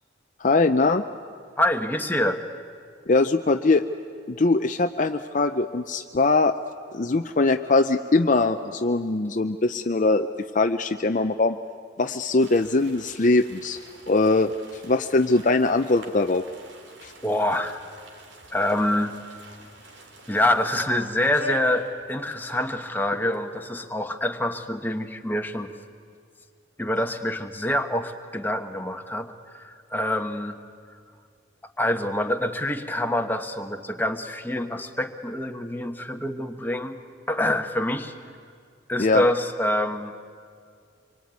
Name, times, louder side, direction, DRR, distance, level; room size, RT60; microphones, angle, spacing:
voice 1, 0.4-1.0 3.1-3.8 4.3-6.5 6.9-10.3 10.5-11.6 12.0-13.8 14.1-16.5 17.0-17.1 39.0-39.2, left 3 dB, 40° left, 8 dB, 0.6 m, -21 dB
voice 2, 1.6-2.4 17.2-17.8 18.5-19.2 20.3-25.7 26.8-30.6 31.8-37.0 37.3-38.1 38.9-40.1, left 1 dB, 10° left, 5 dB, 1.2 m, -26 dB
sound 1, 12.4-22.5 22.8-22.9 23.1-23.5, right 1 dB, 65° right, 3.1 m, -43 dB
26.0 x 23.0 x 9.5 m, 2.3 s
head